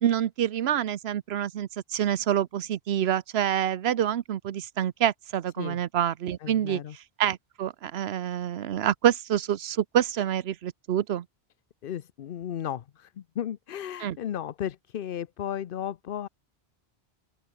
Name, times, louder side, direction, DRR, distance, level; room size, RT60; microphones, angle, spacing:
voice 1, 0.0-11.2 14.0-14.2, right 10 dB, 75° right, 1.0 m, -27 dB
voice 2, 6.4-7.0 11.8-16.3, left 10 dB, 60° left, 0.8 m, -34 dB
open air
omnidirectional pair, 1.1 m